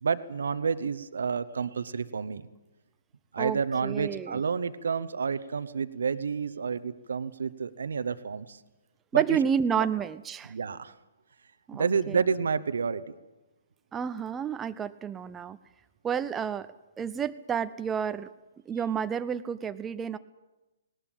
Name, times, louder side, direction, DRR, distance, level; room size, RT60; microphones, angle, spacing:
voice 1, 0.0-2.5 3.3-8.6 9.1-9.4 10.5-10.9 11.7-13.0, right 5 dB, 70° right, 13 dB, 1.0 m, -29 dB
voice 2, 3.4-4.4 9.1-10.5 11.7-12.2 13.9-15.6 16.0-16.7 17.0-18.3 18.7-20.2, right 7 dB, 15° right, 10 dB, 0.7 m, -30 dB
19.0 x 19.0 x 9.0 m, 1.0 s
figure-of-eight pair, 125°, 0 cm